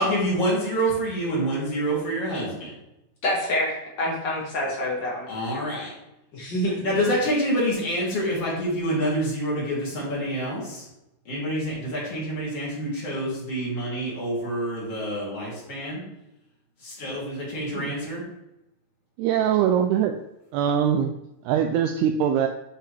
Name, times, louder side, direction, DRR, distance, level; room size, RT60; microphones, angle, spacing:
voice 1, 0.0-2.7 5.3-5.9 6.7-10.9 11.3-16.0 16.8-18.2, equal, 35° left, -6 dB, 3.7 m, -27 dB
voice 2, 3.2-5.3 6.3-6.7, left 1 dB, 75° left, -4 dB, 1.0 m, -26 dB
voice 3, 19.2-20.1 20.5-21.1 21.5-22.5, right 9 dB, 85° right, 5 dB, 2.4 m, -22 dB
10.0 x 5.8 x 3.4 m, 0.89 s
omnidirectional pair, 5.0 m